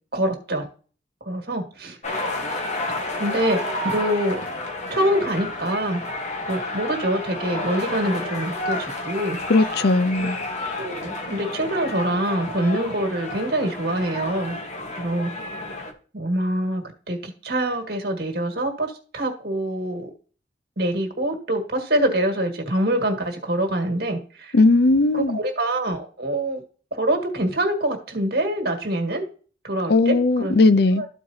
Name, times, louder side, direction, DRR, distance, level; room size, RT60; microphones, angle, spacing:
voice 1, 0.1-0.7 1.2-2.0 2.9-4.4 4.9-6.0 6.5-9.4 10.2-10.3 10.8-14.6 15.0-15.3 16.1-20.1 20.8-24.6 25.1-26.6 26.9-29.2 29.6-30.6 31.0-31.1, right 1 dB, 55° right, 1.9 m, -25 dB
sound 1, 2.0-15.9, left 2 dB, 35° left, 1.2 m, -31 dB
voice 2, 9.5-10.4 24.5-25.4 29.9-31.0, left 3 dB, 55° left, 0.5 m, -17 dB
13.5 x 4.8 x 2.8 m
head